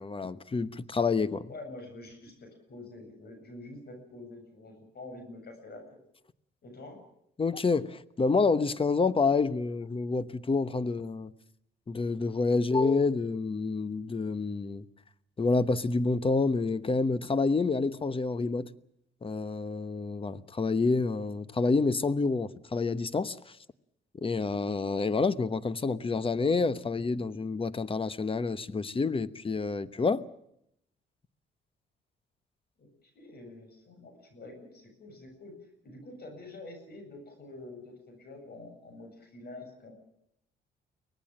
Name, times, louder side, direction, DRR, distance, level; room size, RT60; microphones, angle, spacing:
voice 1, 0.0-1.5 7.4-11.3 11.9-14.8 15.4-18.7 19.2-23.6 24.2-30.2, left 4 dB, 25° left, 1.1 m, -28 dB
voice 2, 1.5-6.0 6.6-7.0 32.8-35.6 35.8-39.9, left 2 dB, 55° left, 7.7 m, -47 dB
24.0 x 18.5 x 7.5 m
cardioid pair, 90°, 20 cm